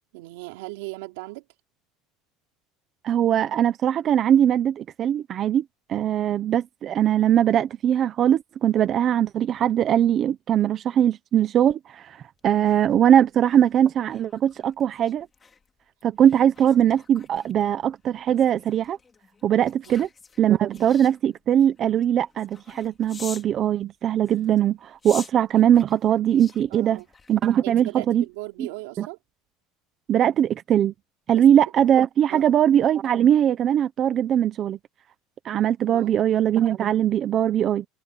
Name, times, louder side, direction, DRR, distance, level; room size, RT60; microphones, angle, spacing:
voice 1, 0.1-1.4 19.9-20.0 26.7-27.1 27.6-29.2 31.3-31.4 32.3-32.6 35.9-36.2, right 23 dB, 85° right, 3.7 m, -38 dB
voice 2, 3.0-5.6 5.9-15.3 16.0-19.0 19.4-20.1 20.4-27.0 27.3-28.2 29.0-29.1 30.1-30.9 31.3-34.8 35.4-37.9, right 10 dB, 35° right, 0.9 m, -21 dB
sound 1, 12.4-23.6 24.2-27.8 28.2-28.5, left 5 dB, 20° left, 3.0 m, -47 dB
cardioid pair, 150°, 0 cm